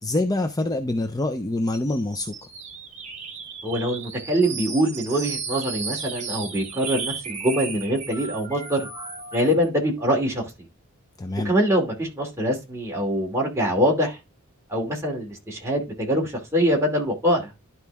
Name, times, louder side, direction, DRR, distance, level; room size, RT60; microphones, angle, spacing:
voice 1, 0.0-2.4 11.2-11.5, left 2 dB, 15° left, 0.5 m, -25 dB
sound 1, 1.7-9.7, right 5 dB, 30° right, 1.8 m, -35 dB
voice 2, 3.6-8.9 9.3-10.5 11.4-14.2 14.7-17.5, equal, 15° right, 2.6 m, -24 dB
11.5 x 4.4 x 3.5 m
head